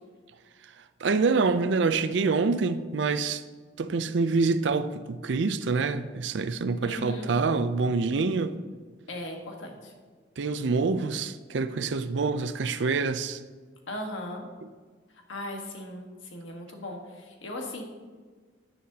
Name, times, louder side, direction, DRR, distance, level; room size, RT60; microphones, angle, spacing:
voice 1, 1.0-3.4 3.8-8.5 10.4-13.4, right 4 dB, 70° right, 0.5 m, -26 dB
voice 2, 6.8-7.3 9.1-9.9 13.9-14.5 15.3-17.8, left 1 dB, 85° left, 1.5 m, -38 dB
10.5 x 9.2 x 2.8 m
head